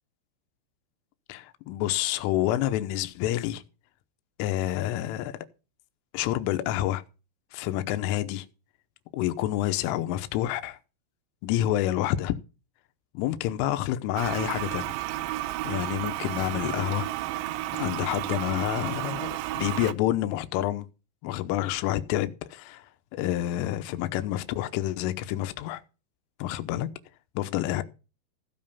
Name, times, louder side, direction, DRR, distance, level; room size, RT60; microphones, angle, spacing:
voice 1, 1.3-3.6 4.4-5.4 6.1-7.0 7.5-8.5 9.1-10.8 11.4-12.4 13.1-14.9 15.6-17.1 17.7-20.9 21.2-22.9 23.1-25.8 26.4-26.9 27.4-27.8, left 13 dB, 80° left, 3.4 m, -28 dB
Toilet flush, 14.2-19.9, right 15 dB, 85° right, 3.4 m, -32 dB
16.0 x 5.5 x 7.0 m
omnidirectional pair, 6.0 m